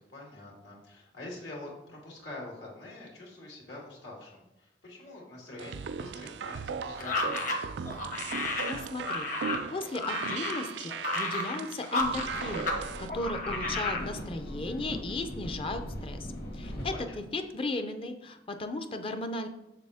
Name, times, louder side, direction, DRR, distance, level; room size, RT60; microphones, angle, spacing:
voice 1, 0.1-7.7 16.9-17.2, left 2 dB, 80° left, -2 dB, 2.2 m, -45 dB
sound 1, 5.6-13.1, right 6 dB, 75° right, 0.3 m, -38 dB
sound 2, 7.0-12.8 13.1-14.0, left 2 dB, 45° left, 1.1 m, -32 dB
voice 2, 8.6-19.5, left 2 dB, 30° left, 8 dB, 0.5 m, -36 dB
sound 3, 12.0-17.1, equal, 60° left, 1.9 m, -40 dB
6.7 x 6.6 x 3.5 m, 0.94 s
head